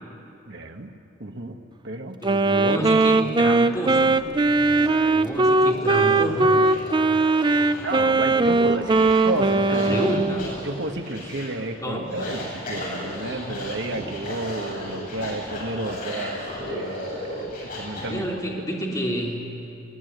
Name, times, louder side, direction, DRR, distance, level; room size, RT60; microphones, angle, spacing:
voice 1, 0.5-0.9 1.2-2.2 7.8-10.0 10.6-16.4 16.7-18.3 18.5-18.6, right 2 dB, 65° right, 4 dB, 1.6 m, -31 dB
voice 2, 2.2-4.2 5.1-7.2 7.5-7.9 9.4-10.5 11.8-12.1 18.1-19.5, equal, 20° left, -2 dB, 3.4 m, -29 dB
Wind instrument woodwind instrument, 2.2-10.4, right 3 dB, 25° right, 0.6 m, -20 dB
sound 1, 3.7-18.0, left 1 dB, 50° left, 8.0 m, -35 dB
22.5 x 18.0 x 9.5 m, 2.8 s
head